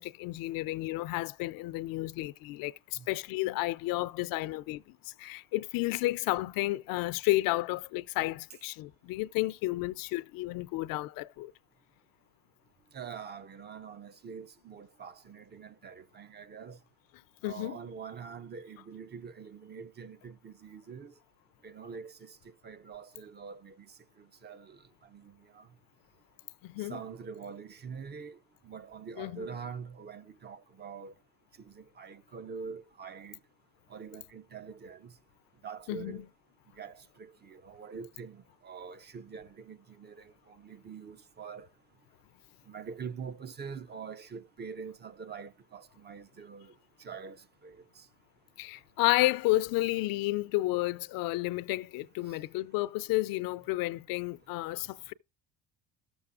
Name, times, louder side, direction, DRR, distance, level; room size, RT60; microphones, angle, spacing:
voice 1, 0.0-11.5 17.4-17.8 26.6-27.0 29.2-29.5 35.9-36.2 48.6-55.1, left 19 dB, 70° left, 0.5 m, -31 dB
voice 2, 12.9-16.8 17.4-21.1 21.6-22.4 22.6-23.9 24.2-24.8 25.1-25.7 26.9-28.4 28.6-31.1 31.6-33.4 33.9-35.1 35.6-36.3 36.8-41.7 42.7-46.7 47.0-48.0, right 6 dB, 30° right, 0.5 m, -44 dB
14.0 x 7.0 x 2.4 m
supercardioid pair, 95°, 35 cm